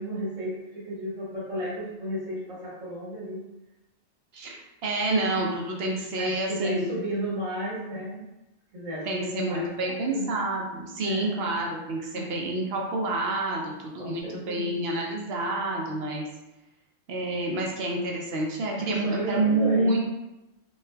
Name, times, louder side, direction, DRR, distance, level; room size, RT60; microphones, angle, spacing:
voice 1, 0.0-3.4 6.2-8.2 8.7-10.3 11.0-11.5 12.1-12.5 14.0-14.7 18.8-20.0, equal, 90° right, -6 dB, 1.5 m, -34 dB
voice 2, 4.3-6.9 9.0-16.2 17.1-20.0, right 2 dB, 65° right, -2 dB, 0.7 m, -28 dB
4.1 x 2.3 x 2.2 m, 0.97 s
omnidirectional pair, 1.3 m